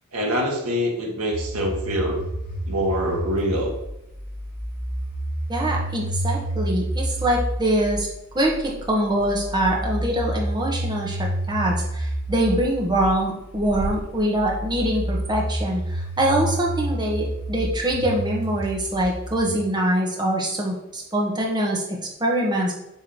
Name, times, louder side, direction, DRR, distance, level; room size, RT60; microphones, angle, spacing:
voice 1, 0.1-2.2 2.7-3.7, equal, 85° right, -1 dB, 1.9 m, -25 dB
sound 1, 1.3-19.5, right 1 dB, 45° left, 2.9 m, -30 dB
voice 2, 5.5-8.1 8.3-21.8 22.2-22.7, right 1 dB, 20° right, -2 dB, 1.5 m, -24 dB
7.9 x 3.7 x 6.0 m, 0.89 s
head